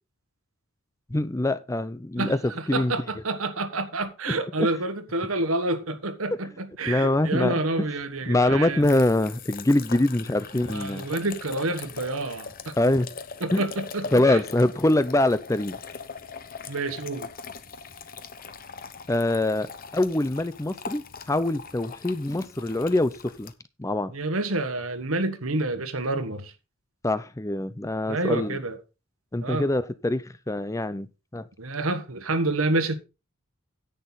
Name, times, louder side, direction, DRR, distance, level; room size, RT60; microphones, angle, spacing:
voice 1, 1.1-2.9 4.3-4.7 6.9-7.6 8.3-11.1 12.8-13.1 13.5-13.6 14.1-15.8 19.1-23.5 23.8-24.1 27.0-28.6 29.3-31.1 31.3-31.5, left 1 dB, 15° left, 0.5 m, -24 dB
voice 2, 2.7-8.9 10.6-12.7 13.4-14.4 16.7-17.3 24.1-26.5 28.1-28.8 29.4-29.7 31.6-33.0, right 2 dB, 70° right, 1.5 m, -28 dB
sound 1, 8.6-23.5, left 5 dB, 40° left, 0.9 m, -41 dB
10.0 x 9.0 x 4.0 m
head